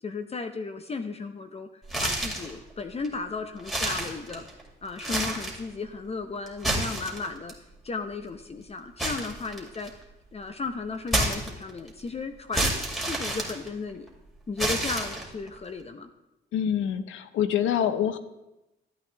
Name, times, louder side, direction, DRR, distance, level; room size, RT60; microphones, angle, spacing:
voice 1, 0.0-4.4 4.8-7.5 7.8-9.9 10.3-12.8 13.0-14.1 14.5-16.1, left 4 dB, 30° left, 8 dB, 0.7 m, -35 dB
sound 1, 1.9-2.5 3.0-3.1 3.6-4.6 5.0-5.6 6.5-7.5 9.0-10.0 11.1-11.9 12.5-14.1 14.6-15.5, right 1 dB, ahead, 2.4 m, -29 dB
voice 2, 16.5-18.2, left 9 dB, 85° left, 11 dB, 0.7 m, -26 dB
12.5 x 8.4 x 3.4 m, 0.97 s
cardioid pair, 90°, 20 cm